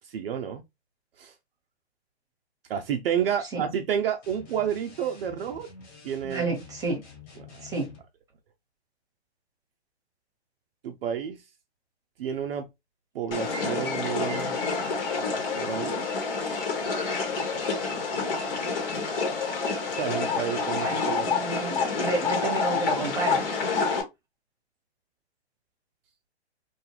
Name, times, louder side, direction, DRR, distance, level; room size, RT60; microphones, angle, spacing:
voice 1, 0.0-0.6 1.2-1.3 2.7-5.7 6.0-6.5 7.5-7.6 10.8-11.4 12.2-12.7 13.1-14.6 15.5-16.0 19.9-21.5, right 9 dB, 60° right, 0.5 m, -30 dB
sound 1, 4.2-8.1, left 5 dB, 25° left, 1.1 m, -49 dB
voice 2, 6.2-7.0 7.6-7.9 13.4-13.5 20.7-23.5, right 2 dB, 10° right, 1.0 m, -31 dB
sound 2, 13.3-24.0, left 4 dB, 55° left, 1.2 m, -28 dB
2.5 x 2.3 x 2.8 m
hypercardioid pair, 135°, 33 cm